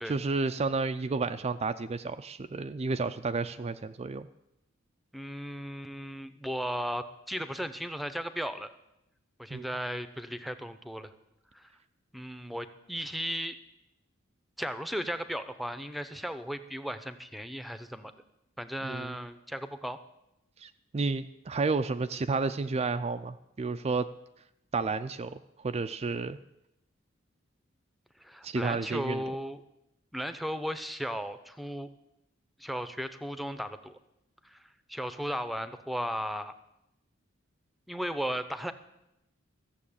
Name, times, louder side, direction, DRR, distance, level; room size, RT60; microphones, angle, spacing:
voice 1, 0.0-4.3 9.5-9.7 18.8-19.2 20.6-24.1 24.7-25.4 25.6-26.4 28.4-29.2, right 4 dB, 30° right, 9 dB, 0.4 m, -31 dB
voice 2, 5.1-8.7 9.4-11.1 11.5-11.7 12.1-13.6 14.6-18.1 18.6-20.0 28.2-29.6 30.1-31.9 32.6-34.0 34.4-36.5 37.9-38.7, equal, ahead, 11 dB, 0.7 m, -36 dB
14.5 x 7.2 x 8.6 m, 0.86 s
head